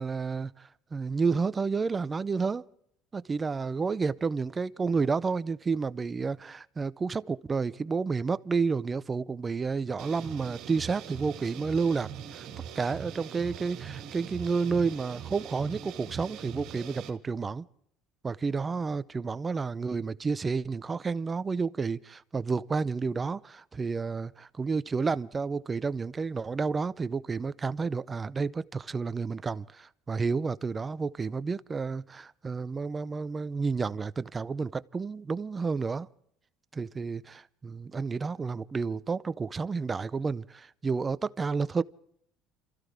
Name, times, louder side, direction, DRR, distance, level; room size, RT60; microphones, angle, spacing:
voice 1, 0.0-2.6 3.1-12.5 12.8-17.6 18.2-36.1 36.7-41.8, right 4 dB, 25° right, 0.6 m, -30 dB
sound 1, 10.0-17.1, right 8 dB, 70° right, 2.1 m, -42 dB
28.0 x 14.5 x 3.4 m
supercardioid pair, 95°, 0 cm